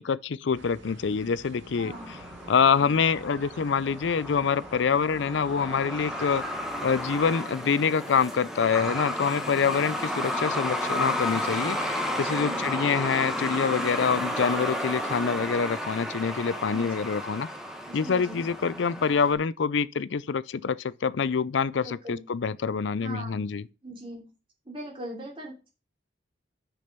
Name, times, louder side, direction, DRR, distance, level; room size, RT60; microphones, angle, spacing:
voice 1, 0.0-2.2 2.5-6.4 6.8-17.5 17.9-23.6, left 6 dB, 70° left, 0.5 m, -26 dB
sound 1, 0.5-7.3, right 2 dB, 80° right, 1.6 m, -47 dB
voice 2, 1.8-2.1 2.8-3.0 12.4-12.7 16.7-16.9 17.9-18.4 21.8-22.3 23.0-23.4 23.8-24.3 24.6-25.7, right 1 dB, 25° right, 3.2 m, -40 dB
Truck, 1.9-19.3, left 1 dB, ahead, 1.2 m, -32 dB
6.4 x 6.1 x 6.6 m
head